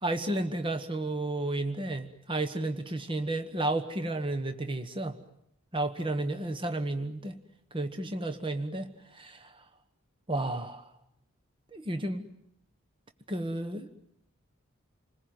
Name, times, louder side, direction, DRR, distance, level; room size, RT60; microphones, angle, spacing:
voice 1, 0.0-5.2 5.7-7.4 7.7-9.7 10.3-10.9 11.7-12.3 13.3-13.9, right 2 dB, 25° right, 8 dB, 1.2 m, -32 dB
29.0 x 20.5 x 9.3 m, 0.78 s
head